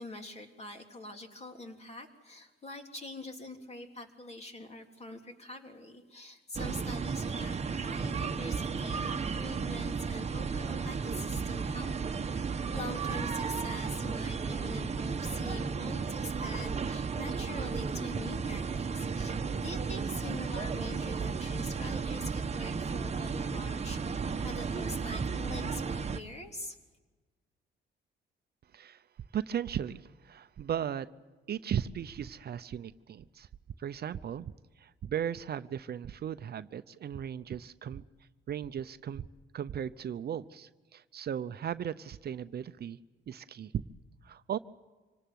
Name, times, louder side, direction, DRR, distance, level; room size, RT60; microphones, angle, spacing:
voice 1, 0.0-26.8, left 2 dB, 35° left, 4 dB, 3.5 m, -44 dB
sound 1, 6.5-26.2, right 5 dB, 35° right, 1.2 m, -34 dB
voice 2, 29.3-31.1 31.5-33.5 33.8-34.5 34.8-38.0 38.5-39.3 39.5-43.0 43.3-43.8 44.2-44.6, right 9 dB, 55° right, 13 dB, 0.7 m, -36 dB
26.0 x 18.5 x 9.3 m, 1.3 s
cardioid pair, 90°, 20 cm